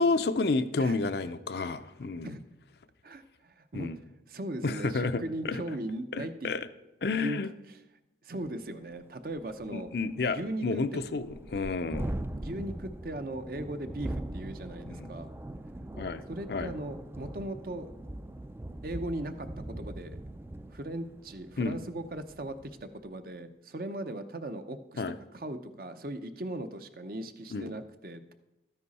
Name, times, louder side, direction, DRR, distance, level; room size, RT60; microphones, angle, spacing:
voice 1, 0.0-2.3 3.7-4.0 4.6-5.6 6.1-6.7 7.0-7.5 9.7-12.1 14.9-15.1 16.0-16.2 16.5-16.7 21.6-21.8 25.0-25.1 27.5-27.7, left 3 dB, 60° left, 11 dB, 0.5 m, -30 dB
voice 2, 3.0-3.9 4.3-6.5 7.1-7.4 7.7-7.8 8.2-9.9 10.2-10.6 12.3-15.3 16.3-17.9 18.8-19.5 19.8-20.2 20.7-22.5 22.8-25.0 25.3-28.3, right 1 dB, 50° right, 9 dB, 0.7 m, -38 dB
Thunderstorm, 8.5-8.6 8.9-9.0 9.3-22.9, right 1 dB, 15° right, 0.3 m, -41 dB
13.0 x 9.9 x 4.2 m, 0.98 s
head